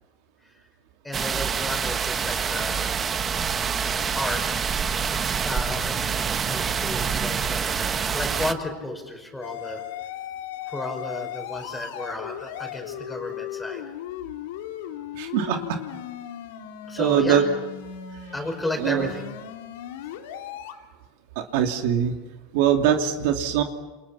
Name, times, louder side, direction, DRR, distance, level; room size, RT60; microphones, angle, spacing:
voice 1, 1.0-3.0 3.8-4.4 5.0-6.0 6.4-9.8 10.7-13.8 16.9-17.5 18.3-19.3, left 1 dB, 5° left, 4 dB, 5.3 m, -33 dB
sound 1, 1.1-8.5, right 6 dB, 20° right, 1.1 m, -26 dB
sound 2, 9.4-20.7, left 11 dB, 90° left, 3.2 m, -37 dB
voice 2, 15.2-15.6 17.0-17.4 18.8-19.1 21.4-22.1 22.5-23.6, right 9 dB, 65° right, 4 dB, 2.7 m, -22 dB
29.5 x 28.0 x 5.8 m, 1.1 s
supercardioid pair, 155°, 0 cm